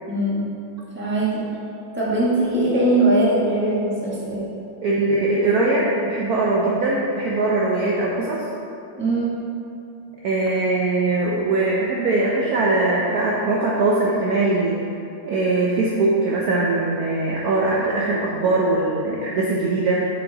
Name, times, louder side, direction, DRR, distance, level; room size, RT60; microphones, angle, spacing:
voice 1, 0.1-0.4 0.9-1.5 1.9-4.4 9.0-9.3, right 1 dB, 5° right, -7 dB, 1.0 m, -20 dB
voice 2, 4.8-8.4 10.2-14.8 15.2-20.1, right 2 dB, 65° right, -4 dB, 1.0 m, -21 dB
6.8 x 5.0 x 3.9 m, 2.7 s
omnidirectional pair, 2.1 m